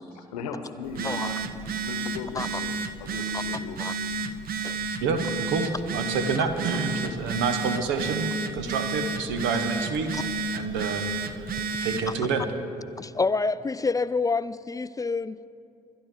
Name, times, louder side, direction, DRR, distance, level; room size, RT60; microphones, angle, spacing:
voice 1, 0.0-1.4 1.8-3.8, left 5 dB, 80° left, 7 dB, 1.0 m, -37 dB
Telephone, 0.8-12.1, right 4 dB, 50° right, 0.7 m, -31 dB
voice 2, 5.0-8.3 8.5-10.1 10.5-11.5 11.8-12.4, right 4 dB, 70° right, 8 dB, 1.1 m, -28 dB
voice 3, 13.0-15.5, left 4 dB, 20° left, 16 dB, 0.3 m, -28 dB
24.0 x 10.5 x 3.7 m, 2.7 s
figure-of-eight pair, 45°, 20 cm